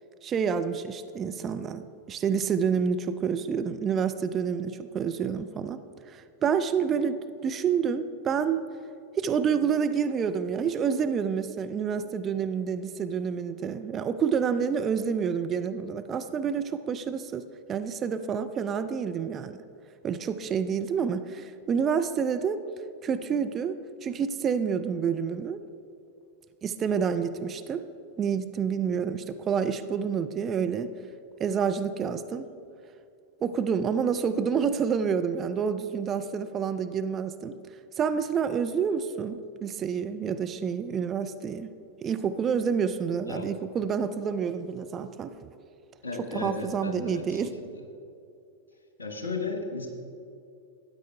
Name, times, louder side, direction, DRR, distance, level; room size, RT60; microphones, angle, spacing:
voice 1, 0.2-8.6 9.2-17.4 17.7-19.6 20.0-22.6 23.0-23.8 24.0-25.6 26.6-27.8 28.2-30.9 31.4-32.5 33.4-37.6 38.0-41.7 42.0-45.5 46.2-47.5, right 6 dB, 25° right, 9 dB, 0.4 m, -28 dB
voice 2, 46.0-47.5 49.0-49.9, left 3 dB, 70° left, 4 dB, 1.3 m, -34 dB
13.0 x 9.1 x 3.5 m, 2.6 s
figure-of-eight pair, 90°, 0 cm